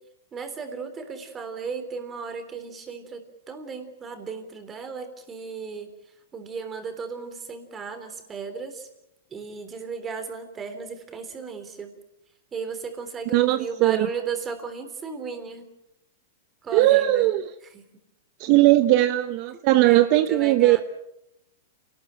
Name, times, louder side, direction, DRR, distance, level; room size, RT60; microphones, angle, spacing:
voice 1, 0.3-5.9 6.3-8.9 9.3-11.9 12.5-15.7 16.6-17.3 17.7-17.9 19.8-20.8, right 5 dB, 15° right, 7 dB, 3.6 m, -35 dB
voice 2, 13.3-14.1 16.7-17.5 18.4-20.8, right 16 dB, 40° right, 11 dB, 0.9 m, -19 dB
28.0 x 19.5 x 9.0 m, 0.85 s
supercardioid pair, 160°, 0 cm